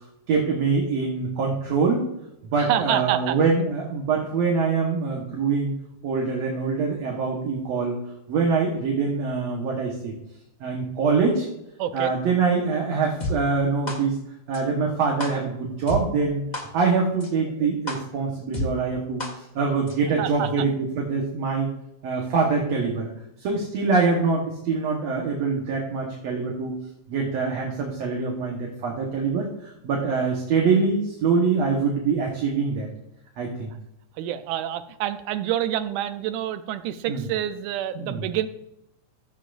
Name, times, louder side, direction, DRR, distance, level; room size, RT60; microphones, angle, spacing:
voice 1, 0.3-2.0 2.5-5.7 6.0-8.0 8.3-10.1 10.6-11.5 11.9-14.2 14.5-16.4 16.7-21.7 22.0-23.1 23.4-26.7 27.1-32.9 33.4-33.7 37.1-37.2 37.9-38.2, right 4 dB, 65° right, -1 dB, 2.4 m, -24 dB
voice 2, 2.6-3.4 11.8-12.1 20.2-20.7 34.2-38.5, right 11 dB, 85° right, 11 dB, 2.2 m, -27 dB
sound 1, 13.2-13.3 13.9-14.0 14.5-14.6 15.2-15.3 15.9-16.0 16.5-16.6 17.2-17.3 17.9-18.0 18.5-18.6 19.2-19.3 19.9-20.0, left 2 dB, 25° left, 0.9 m, -29 dB
15.0 x 7.4 x 2.6 m, 0.83 s
omnidirectional pair, 3.5 m